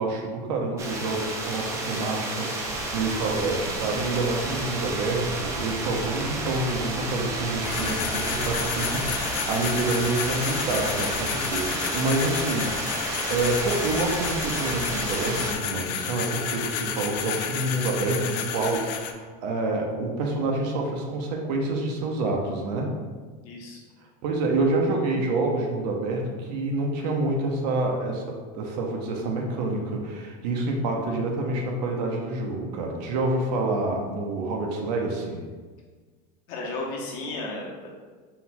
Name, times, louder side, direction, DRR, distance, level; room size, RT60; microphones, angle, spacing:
voice 1, 0.0-22.9 24.2-28.2 28.5-35.4, right 2 dB, 85° right, 1 dB, 0.7 m, -27 dB
sound 1, 0.8-15.5, right 2 dB, 15° right, 0.3 m, -31 dB
sound 2, 7.6-19.1, left 8 dB, 80° left, 0.4 m, -31 dB
voice 2, 23.4-23.8 36.5-37.9, left 2 dB, 55° left, -2 dB, 0.9 m, -34 dB
3.9 x 2.3 x 4.2 m, 1.4 s
supercardioid pair, 170°, 21 cm